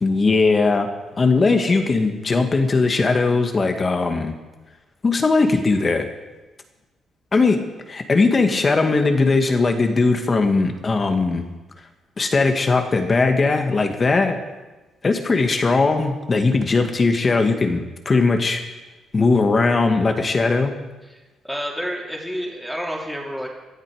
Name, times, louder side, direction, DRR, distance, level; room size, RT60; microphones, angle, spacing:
voice 1, 0.0-0.9 1.2-4.3 5.0-6.1 7.3-7.6 7.9-11.4 12.2-14.4 15.0-18.6 19.1-20.7, left 3 dB, 35° left, 5 dB, 1.8 m, -19 dB
voice 2, 21.0-23.5, equal, ahead, -1 dB, 3.3 m, -30 dB
17.0 x 11.5 x 5.0 m, 1.2 s
cardioid pair, 90°, 0 cm